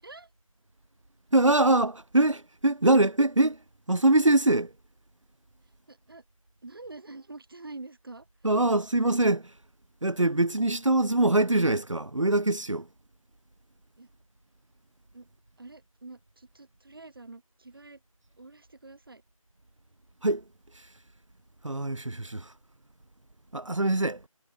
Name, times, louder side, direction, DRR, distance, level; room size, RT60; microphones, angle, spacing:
voice 1, 1.3-4.7 8.4-9.6 10.0-12.9 20.2-20.4 20.7-21.0 21.6-22.5 23.5-24.3, right 2 dB, 60° right, 4.6 m, -24 dB
voice 2, 5.9-6.2 6.6-8.3 14.0-14.1 15.1-15.3 15.6-18.0 18.4-19.2, right 3 dB, 40° right, 5.6 m, -46 dB
figure-of-eight pair, 170°, 18 cm